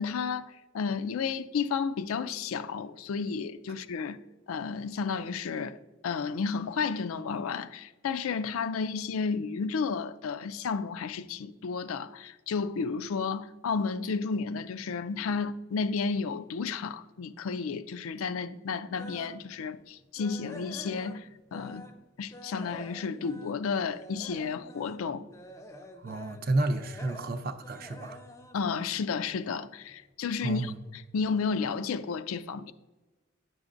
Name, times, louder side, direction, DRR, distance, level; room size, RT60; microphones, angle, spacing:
voice 1, 0.0-4.2 4.5-5.8 6.0-21.9 22.2-25.3 28.5-32.7, left 5 dB, 85° left, 0.4 m, -32 dB
sound 1, 19.0-19.4 19.8-22.0 22.3-29.5 29.9-30.1 30.6-30.7 31.1-31.2, left 1 dB, 15° left, 0.4 m, -48 dB
voice 2, 26.0-28.2 30.4-30.8, right 2 dB, 45° right, 0.5 m, -31 dB
9.4 x 6.1 x 2.5 m
head